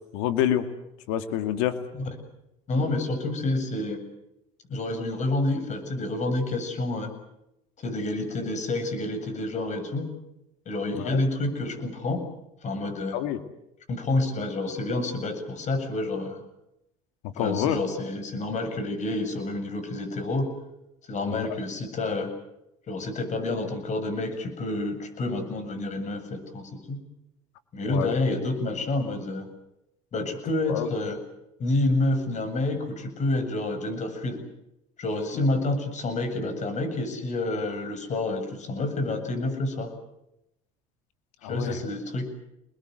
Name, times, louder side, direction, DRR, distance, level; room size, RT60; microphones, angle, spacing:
voice 1, 0.1-0.7 1.1-1.8 11.0-11.2 13.1-13.4 17.4-17.8 21.2-21.6 27.9-28.1 30.7-30.9 41.4-41.8, left 11 dB, 80° left, 8 dB, 2.4 m, -27 dB
voice 2, 2.7-4.0 4.7-7.1 7.8-10.1 10.7-12.2 12.6-13.2 13.9-16.4 17.3-20.5 21.1-22.3 22.9-27.0 27.7-29.5 30.1-31.2 31.6-34.4 35.0-39.9 41.5-42.3, left 2 dB, 45° left, 9 dB, 7.7 m, -28 dB
29.0 x 21.5 x 8.0 m, 0.85 s
supercardioid pair, 90°, 17 cm